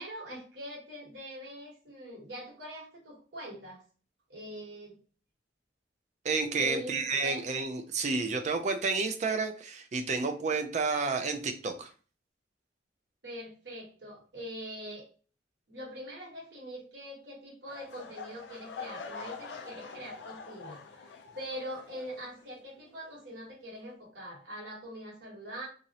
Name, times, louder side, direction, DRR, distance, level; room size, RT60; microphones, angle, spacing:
voice 1, 0.0-3.8 4.3-5.0 6.5-7.4 13.2-15.0 15.7-21.1 21.3-25.7, equal, 75° right, -5 dB, 1.1 m, -43 dB
voice 2, 6.2-11.9, right 4 dB, 40° right, 7 dB, 0.4 m, -30 dB
sound 1, 17.7-22.7 23.0-23.3 23.8-23.9, left 5 dB, 75° left, 0.4 m, -45 dB
2.5 x 2.0 x 2.7 m, 0.38 s
head